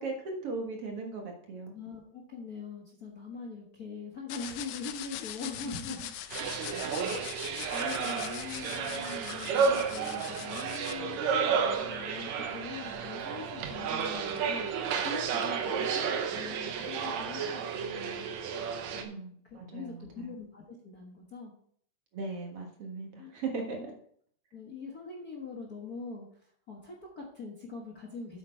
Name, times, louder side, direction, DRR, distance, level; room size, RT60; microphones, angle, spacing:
voice 1, 0.0-1.7 5.4-5.5 6.4-7.2 7.4-7.5 19.0-20.3 22.1-23.9, right 3 dB, 55° right, 1 dB, 2.3 m, -39 dB
voice 2, 1.7-6.2 7.0-14.7 15.0-18.3 18.9-21.5 23.2-23.3 23.7-23.9 24.5-28.4, left 4 dB, 45° left, 0 dB, 1.3 m, -43 dB
sound 1, 4.3-10.9, left 12 dB, 90° left, 2.2 m, -42 dB
sound 2, 6.3-19.0, right 6 dB, 70° right, 2.2 m, -32 dB
8.7 x 8.2 x 4.5 m, 0.62 s
omnidirectional pair, 3.4 m